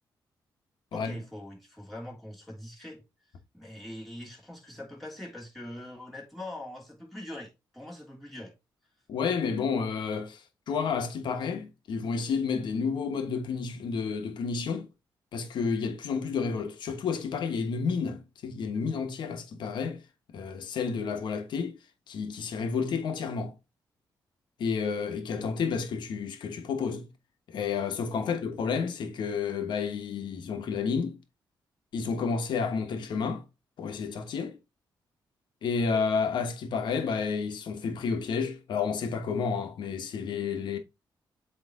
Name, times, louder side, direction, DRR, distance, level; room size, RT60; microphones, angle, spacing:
voice 1, 0.9-3.0 3.5-8.5, left 1 dB, ahead, 3.0 m, -43 dB
voice 2, 9.1-10.4 10.7-14.9 15.3-20.0 20.3-21.8 22.1-23.6 24.6-27.1 27.5-31.2 31.9-33.4 33.8-34.6 35.6-40.8, left 5 dB, 75° left, 1.1 m, -30 dB
8.0 x 3.2 x 3.6 m
cardioid pair, 100°, 8 cm